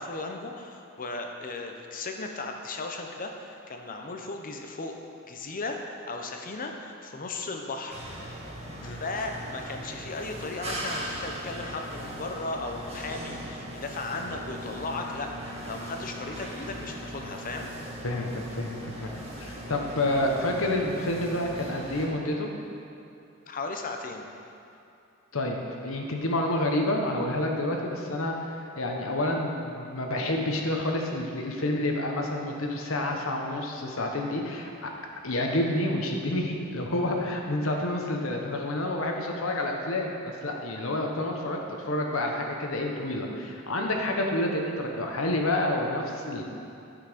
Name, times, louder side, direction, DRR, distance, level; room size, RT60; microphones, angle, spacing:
voice 1, 0.0-5.0 5.3-8.0 8.8-17.7 23.5-24.3, left 3 dB, 40° left, 3 dB, 0.8 m, -36 dB
sound 1, 7.9-22.1, right 1 dB, 30° right, 1.5 m, -39 dB
voice 2, 18.0-22.5 25.3-25.6 25.8-34.9 35.2-46.4, left 1 dB, 70° left, 1 dB, 1.1 m, -29 dB
10.0 x 5.9 x 5.2 m, 2.7 s
head